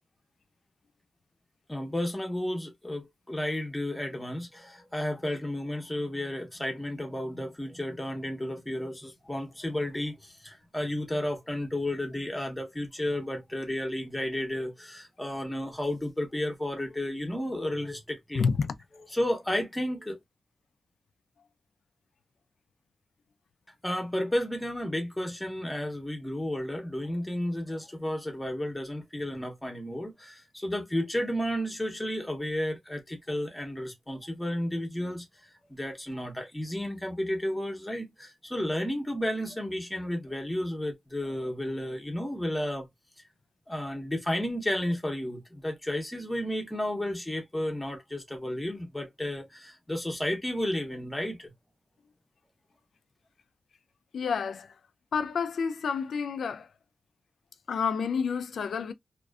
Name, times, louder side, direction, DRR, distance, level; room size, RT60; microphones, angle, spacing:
voice 1, 1.7-18.5 19.1-20.2 23.8-35.3 35.7-42.9 43.7-51.5, left 1 dB, 10° left, 0.7 m, -32 dB
voice 2, 18.3-18.7 54.1-54.7 55.1-56.7 57.7-58.9, left 6 dB, 80° left, 0.3 m, -29 dB
2.5 x 2.3 x 2.2 m
wide cardioid pair, 140°, 0 cm